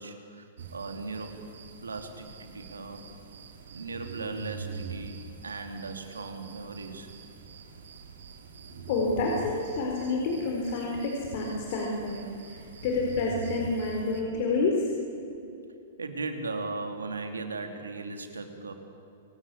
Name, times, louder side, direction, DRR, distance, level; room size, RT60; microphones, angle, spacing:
voice 1, 0.0-1.5 1.8-3.1 3.7-7.1 16.0-18.7, right 3 dB, 90° right, 6 dB, 3.0 m, -37 dB
sound 1, 0.6-14.2, right 5 dB, 70° right, 2.8 m, -44 dB
voice 2, 8.9-14.9, left 3 dB, 55° left, 0 dB, 4.4 m, -29 dB
27.5 x 18.0 x 8.6 m, 2.7 s
hypercardioid pair, 115°, 0 cm